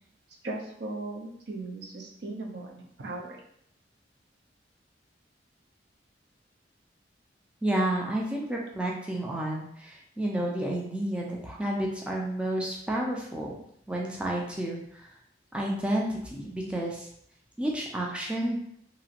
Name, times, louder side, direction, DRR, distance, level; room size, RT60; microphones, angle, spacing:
voice 1, 0.4-3.4, right 2 dB, 65° right, 0 dB, 0.6 m, -38 dB
voice 2, 7.6-13.6 13.9-15.2 15.5-17.1 17.6-18.6, right 1 dB, 5° right, -2 dB, 0.3 m, -30 dB
2.9 x 2.5 x 2.8 m, 0.71 s
head